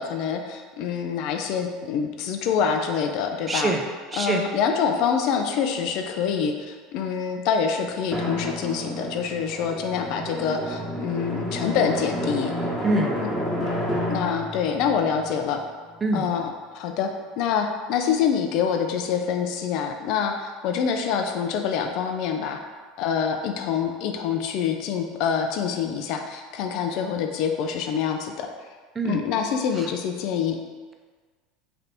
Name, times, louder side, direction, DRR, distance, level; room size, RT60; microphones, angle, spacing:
voice 1, 0.0-3.7 4.1-12.5 13.2-13.3 13.5-13.7 14.1-15.6 16.1-17.1 17.4-22.6 23.0-28.5 29.0-30.6, left 7 dB, 60° left, 4 dB, 0.4 m, -26 dB
voice 2, 3.5-3.8 4.1-4.5 12.8-13.1 16.0-16.3 29.0-29.2 29.8-29.9, right 2 dB, 25° right, 3 dB, 0.5 m, -24 dB
Drum, 8.1-16.4, equal, ahead, 1.1 m, -30 dB
3.3 x 2.6 x 4.2 m, 1.4 s
hypercardioid pair, 90°, 0 cm